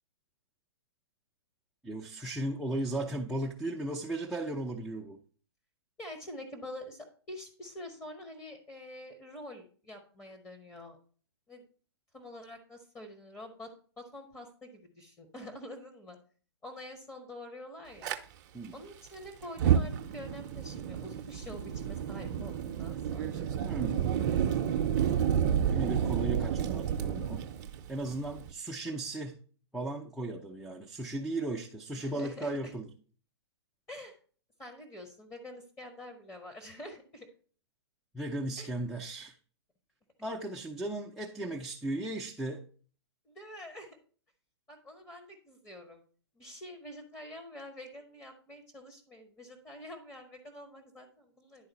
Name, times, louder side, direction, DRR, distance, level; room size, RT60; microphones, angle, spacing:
voice 1, 1.8-5.2 18.5-18.8 23.6-24.2 25.7-27.5 27.9-29.4 29.7-32.9 38.1-39.3 40.2-42.7, right 2 dB, ahead, 0.5 m, -36 dB
voice 2, 6.0-11.0 11.5-11.6 12.1-16.2 16.6-18.1 18.7-23.6 31.9-32.7 33.9-34.2 34.6-37.3 38.6-38.7 43.3-44.0 44.7-46.0 46.4-51.7, left 1 dB, 15° left, 1.1 m, -46 dB
Fire, 18.0-18.2 19.4-28.5, right 9 dB, 40° right, 0.6 m, -30 dB
10.5 x 4.0 x 4.0 m
figure-of-eight pair, 120°, 14 cm